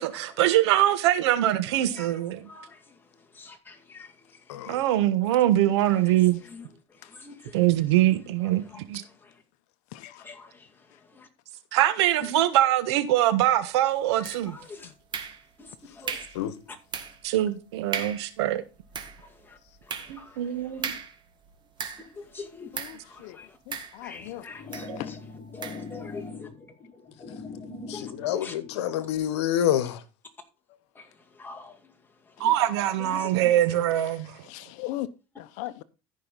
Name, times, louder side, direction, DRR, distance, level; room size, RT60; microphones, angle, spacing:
voice 1, 0.0-2.5 4.7-6.4 7.5-8.6 8.9-9.0 11.7-14.6 17.2-18.6 20.1-20.9 24.9-25.0 27.7-27.9 32.4-34.4, right 13 dB, 80° right, 1.3 m, -23 dB
voice 2, 1.7-4.9 5.8-7.7 8.4-9.4 10.2-11.3 12.2-12.3 14.2-14.9 15.6-16.3 19.2-20.9 22.1-23.6 24.0-25.2 25.5-26.5 27.9-28.5 30.9-31.9 32.3-32.5 33.0-33.5, left 4 dB, 15° left, 2.2 m, -46 dB
voice 3, 9.9-10.2 22.7-23.4 23.7-24.4 25.0-25.2 34.5-35.1 35.4-35.8, left 16 dB, 65° left, 0.8 m, -38 dB
sound 1, 14.2-14.6 15.1-15.7 16.1-16.4 16.9-17.3 17.6-17.7 17.9-18.3 18.7-22.2 22.7-23.1 23.7-24.3 24.7-24.9 25.6-25.9, right 6 dB, 35° right, 1.8 m, -36 dB
sound 2, 24.2-29.2, left 4 dB, 30° left, 3.0 m, -41 dB
voice 4, 27.9-30.0, left 11 dB, 85° left, 1.2 m, -27 dB
14.0 x 5.6 x 4.1 m
supercardioid pair, 105°, 14 cm